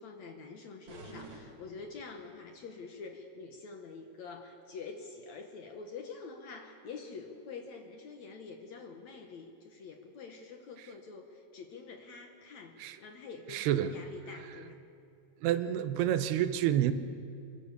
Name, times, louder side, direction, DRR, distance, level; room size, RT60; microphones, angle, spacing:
voice 1, 0.0-14.8, left 4 dB, 60° left, 4 dB, 2.1 m, -46 dB
sound 1, 0.9-2.3, right 2 dB, 55° right, 4.5 m, -50 dB
voice 2, 13.5-13.9 15.4-16.9, right 11 dB, 85° right, 11 dB, 2.9 m, -28 dB
26.0 x 23.5 x 6.8 m, 2.6 s
omnidirectional pair, 4.6 m